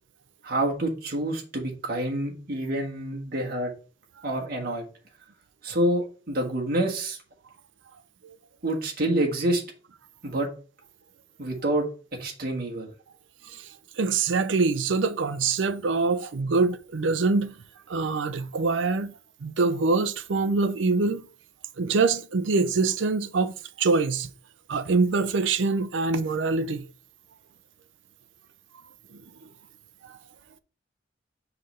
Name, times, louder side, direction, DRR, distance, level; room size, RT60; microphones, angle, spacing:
voice 1, 0.4-3.7 4.2-4.8 5.6-7.2 8.6-9.6 10.2-10.5 11.4-12.9, right 1 dB, 55° right, 1.5 m, -27 dB
voice 2, 14.0-17.5 17.9-19.1 19.4-21.3 21.8-24.3 24.7-26.9 30.1-30.2, right 4 dB, 80° right, 0.5 m, -24 dB
5.6 x 3.3 x 5.4 m
head